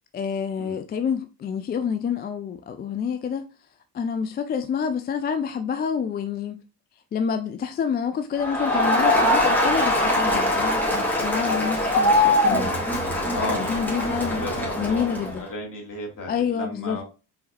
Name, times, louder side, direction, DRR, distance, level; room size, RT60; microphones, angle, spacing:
voice 1, 0.1-3.5 3.9-6.6 7.1-12.8 13.5-14.4 14.8-15.4 16.3-17.0, left 7 dB, 25° left, 0.3 m, -28 dB
Crowd, 8.4-15.4, left 1 dB, 5° left, 2.1 m, -22 dB
voice 2, 13.3-13.8 14.3-17.0, left 2 dB, 40° left, 2.4 m, -33 dB
4.4 x 4.1 x 2.5 m
figure-of-eight pair, 40°, 49 cm